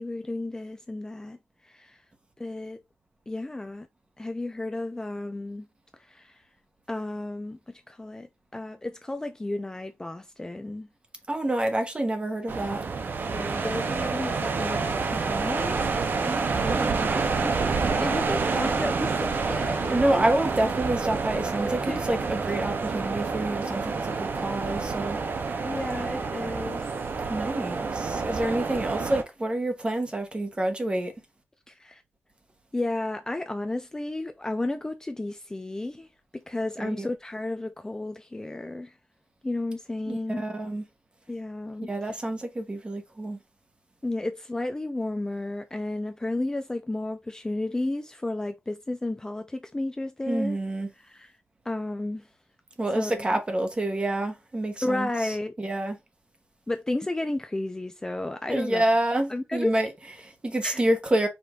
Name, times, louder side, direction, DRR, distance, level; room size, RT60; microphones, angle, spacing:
voice 1, 0.0-1.4 1.6-2.0 2.4-2.8 3.3-3.9 4.2-5.7 6.0-6.4 6.9-10.9 13.2-15.8 16.6-16.9 17.3-20.2 21.7-22.0 25.6-27.2 31.7-32.0 32.7-36.1 36.3-38.9 39.4-40.4 41.3-41.9 44.0-50.6 51.0-51.3 51.7-52.3 52.9-53.4 54.8-55.5 56.7-58.8 59.3-59.7 60.6-60.9, left 2 dB, 15° left, 0.4 m, -33 dB
voice 2, 11.3-12.8 16.2-17.1 19.9-25.2 27.3-31.1 36.8-37.1 40.1-40.9 41.9-43.4 50.3-50.9 52.8-56.0 58.5-61.3, right 1 dB, 25° right, 1.1 m, -28 dB
sound 1, 12.5-29.2, right 4 dB, 55° right, 0.7 m, -28 dB
5.1 x 2.5 x 3.7 m
wide cardioid pair, 140°, 4 cm